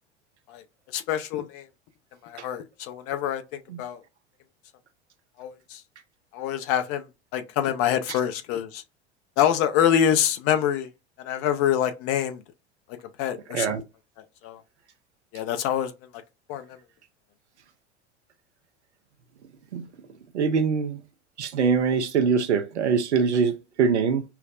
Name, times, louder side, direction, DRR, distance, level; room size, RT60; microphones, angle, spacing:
voice 1, 0.9-1.7 2.2-4.0 5.4-5.8 6.3-7.1 7.3-8.8 9.4-10.9 11.2-12.4 12.9-13.7 14.4-14.6 15.3-15.9 16.5-16.8, left 9 dB, 45° left, 0.6 m, -26 dB
voice 2, 20.3-21.0 21.4-24.2, right 6 dB, 75° right, 0.6 m, -23 dB
5.6 x 2.1 x 2.4 m
figure-of-eight pair, 75°, 34 cm